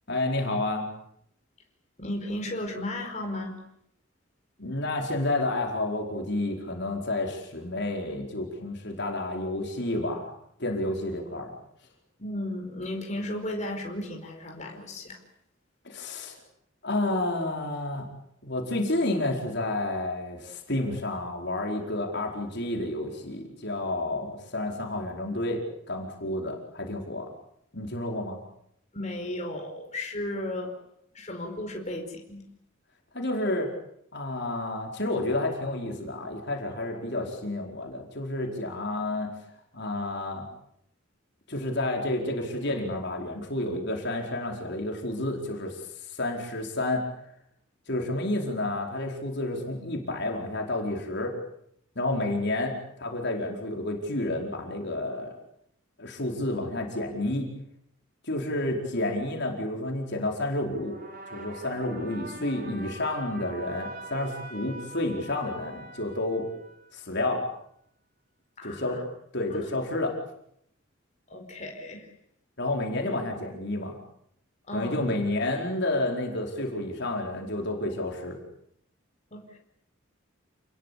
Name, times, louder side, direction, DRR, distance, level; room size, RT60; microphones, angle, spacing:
voice 1, 0.1-0.9 4.6-10.3 10.6-11.5 15.8-16.4 16.8-18.1 18.4-25.6 25.9-27.3 27.7-28.4 33.1-33.7 34.1-39.3 39.7-40.4 41.5-45.8 46.1-47.0 47.9-51.4 51.9-55.3 56.0-57.5 58.2-61.0 61.3-66.5 66.9-67.4 68.6-69.0 69.3-70.1 72.6-74.0 74.7-78.4, left 2 dB, 55° left, 1 dB, 4.8 m, -30 dB
voice 2, 2.0-3.6 12.2-15.2 24.2-24.3 28.9-30.8 31.1-32.5 68.6-69.0 69.5-69.7 71.3-72.1 74.7-75.0 79.3-79.6, left 1 dB, 35° left, 2 dB, 4.9 m, -35 dB
sound 1, 60.7-67.0, right 2 dB, 50° right, 5.6 m, -44 dB
29.5 x 21.0 x 8.5 m, 0.74 s
head